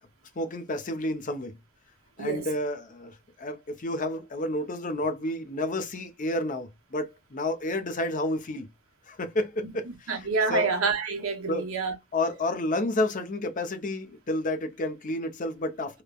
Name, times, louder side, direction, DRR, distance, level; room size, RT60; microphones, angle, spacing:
voice 1, 0.4-1.6 2.2-8.7 9.1-9.8 10.5-10.7 11.5-11.7 12.1-16.0, left 1 dB, 40° left, 0.6 m, -30 dB
voice 2, 9.6-12.0, right 4 dB, 85° right, 0.9 m, -28 dB
3.0 x 2.1 x 2.3 m
head